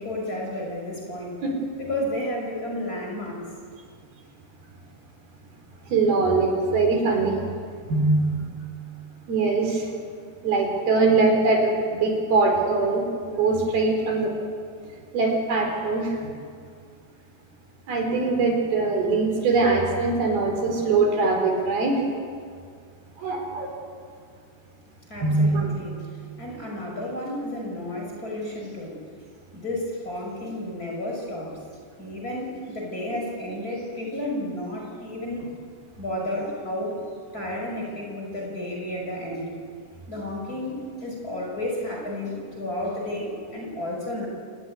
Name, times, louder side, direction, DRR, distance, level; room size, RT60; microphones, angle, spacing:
voice 1, 0.0-1.4 1.8-3.5 25.1-26.0 26.4-29.0 29.5-31.5 32.0-35.5 36.0-37.0 37.3-39.5 40.1-44.3, left 1 dB, 20° left, -1 dB, 6.0 m, -32 dB
voice 2, 5.9-7.4 7.9-8.5 9.3-9.8 10.4-13.0 13.4-14.3 15.1-16.2 17.9-22.0 23.2-23.7 25.2-25.8, right 3 dB, 60° right, 2 dB, 6.0 m, -22 dB
29.0 x 21.0 x 9.6 m, 2.1 s
omnidirectional pair, 4.9 m